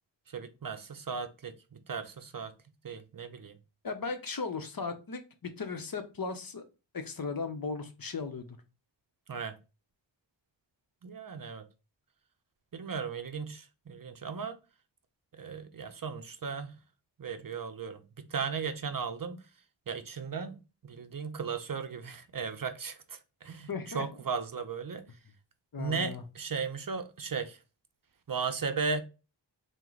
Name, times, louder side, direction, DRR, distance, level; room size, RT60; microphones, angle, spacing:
voice 1, 0.3-2.5 2.8-3.6 9.3-9.6 11.0-11.7 12.7-14.6 15.3-16.8 17.2-19.5 19.9-25.2 25.8-27.6 28.3-29.0, right 5 dB, 50° right, 0.6 m, -36 dB
voice 2, 3.8-6.6 6.9-8.6 23.7-24.0 25.7-26.2, left 4 dB, 50° left, 0.8 m, -37 dB
4.4 x 2.2 x 3.8 m
cardioid pair, 45°, 46 cm